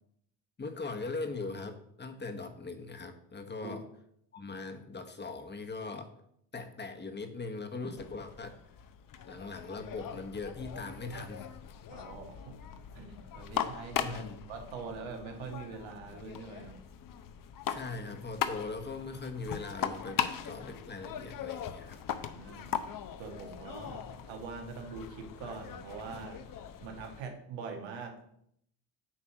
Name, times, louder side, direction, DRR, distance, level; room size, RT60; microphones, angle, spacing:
voice 1, 0.6-3.8 4.3-6.1 6.5-8.6 9.3-11.5 14.0-14.5 17.7-22.0 23.8-24.1, left 3 dB, 20° left, 6 dB, 1.1 m, -40 dB
sound 1, 8.0-27.2, left 9 dB, 45° left, 0.7 m, -40 dB
voice 2, 11.9-12.6 12.9-16.8 22.2-22.7 23.2-26.4 26.8-28.3, right 4 dB, 70° right, 3 dB, 1.8 m, -43 dB
8.7 x 3.3 x 6.1 m, 0.72 s
supercardioid pair, 75°, 48 cm